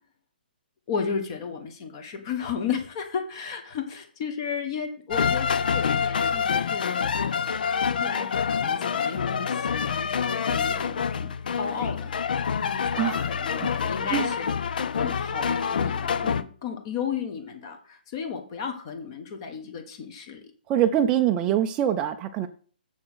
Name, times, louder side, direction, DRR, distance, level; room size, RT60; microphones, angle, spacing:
voice 1, 0.9-7.1 7.8-14.5 15.0-20.4, left 6 dB, 30° left, 5 dB, 1.4 m, -34 dB
sound 1, 5.1-16.4, left 6 dB, 60° left, 0.7 m, -26 dB
voice 2, 13.0-13.3 14.1-14.3 20.7-22.5, right 10 dB, 15° right, 4 dB, 0.5 m, -24 dB
7.4 x 6.2 x 6.3 m, 0.42 s
hypercardioid pair, 165°, 5 cm